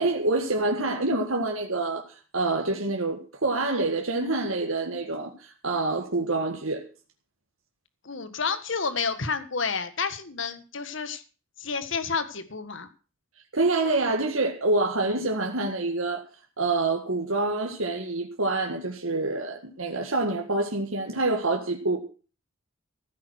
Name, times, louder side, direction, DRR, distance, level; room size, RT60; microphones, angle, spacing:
voice 1, 0.0-6.8 13.5-16.3 16.6-22.0, right 2 dB, 85° right, 2 dB, 1.9 m, -26 dB
voice 2, 8.0-11.2 11.6-12.9, left 5 dB, 65° left, 11 dB, 1.6 m, -30 dB
15.0 x 8.7 x 6.4 m, 0.37 s
head